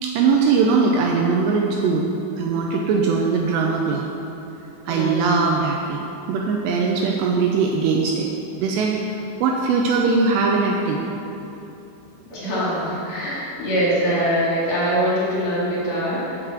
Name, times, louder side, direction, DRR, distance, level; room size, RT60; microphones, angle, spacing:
voice 1, 0.0-2.1 2.4-4.1 4.9-8.3 8.6-9.0 9.4-11.0, right 4 dB, 80° right, 0 dB, 2.6 m, -20 dB
voice 2, 4.9-5.2 6.9-7.2 12.3-16.4, equal, 50° left, -9 dB, 3.4 m, -23 dB
7.9 x 6.0 x 7.5 m, 2.9 s
omnidirectional pair, 5.3 m